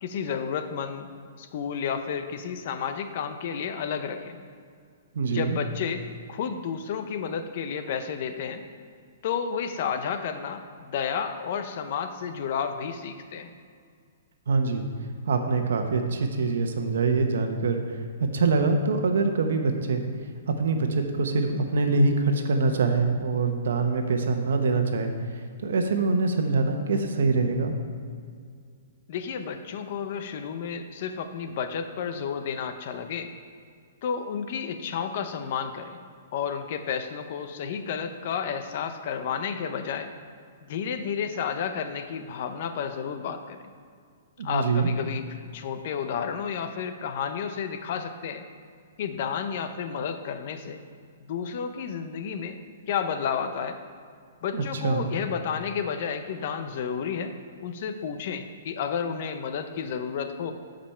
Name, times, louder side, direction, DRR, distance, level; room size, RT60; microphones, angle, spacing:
voice 1, 0.0-1.1 1.4-4.4 5.3-8.6 9.2-13.6 29.1-33.3 34.0-36.0 36.3-40.1 40.7-43.6 44.4-48.4 49.0-50.8 51.3-52.6 52.9-53.8 54.4-57.3 57.6-60.5, left 7 dB, 45° left, 8 dB, 0.6 m, -31 dB
voice 2, 5.1-5.6 14.5-14.8 15.3-18.0 18.3-20.0 20.6-25.1 25.6-27.7 44.4-44.9 54.5-55.1, right 3 dB, 75° right, 5 dB, 1.1 m, -24 dB
12.5 x 5.2 x 4.4 m, 2.1 s
hypercardioid pair, 160°, 0 cm